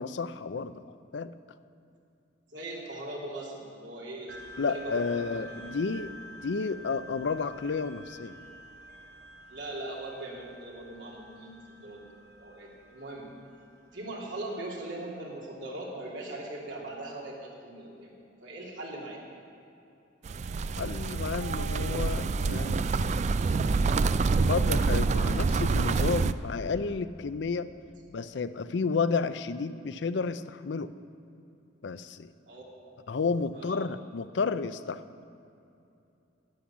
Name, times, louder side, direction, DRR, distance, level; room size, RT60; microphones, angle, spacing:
voice 1, 0.0-1.3 4.6-6.1 6.4-8.3 20.8-22.9 24.4-27.7 28.1-30.9 31.8-32.3 33.1-35.0, left 4 dB, 70° left, 13 dB, 0.5 m, -31 dB
voice 2, 2.5-5.5 9.5-12.0 12.4-13.3 13.9-18.1 18.4-19.2 32.5-33.1 33.5-33.8, right 2 dB, 85° right, -4 dB, 3.0 m, -40 dB
sound 1, 4.3-15.2, equal, 65° right, 2.1 m, -49 dB
sound 2, 20.3-26.3, right 4 dB, 40° right, 0.3 m, -27 dB
11.5 x 10.0 x 7.2 m, 2.7 s
head